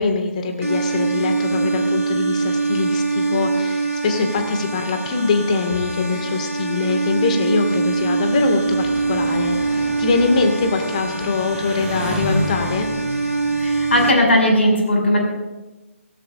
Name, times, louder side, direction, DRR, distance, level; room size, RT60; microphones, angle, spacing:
voice 1, 0.0-12.9, left 4 dB, 30° left, 5 dB, 2.0 m, -23 dB
sound 1, 0.6-14.1, right 3 dB, 85° right, 3.2 m, -23 dB
Engine, 7.8-14.4, equal, 5° right, 3.0 m, -32 dB
voice 2, 13.6-15.2, left 1 dB, 55° left, 1 dB, 6.1 m, -17 dB
23.5 x 17.5 x 2.6 m, 1.1 s
figure-of-eight pair, 145°, 8 cm